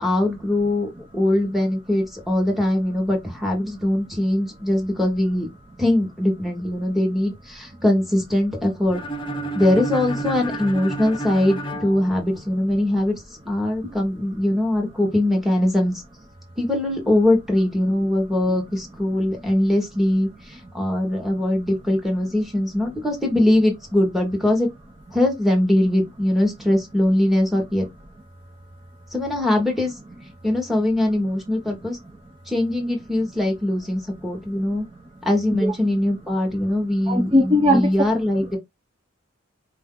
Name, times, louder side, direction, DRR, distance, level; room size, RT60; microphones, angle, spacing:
voice 1, 0.0-5.5 5.8-9.0 9.5-13.1 13.4-15.9 16.6-24.7 25.1-27.9 29.1-29.9 30.4-32.0 32.5-34.8 35.2-38.6, left 1 dB, ahead, 1.1 m, -21 dB
sound 1, 8.9-12.8, right 1 dB, 25° left, 0.6 m, -31 dB
voice 2, 37.1-37.8, left 1 dB, 25° right, 0.6 m, -18 dB
4.5 x 2.7 x 3.7 m
head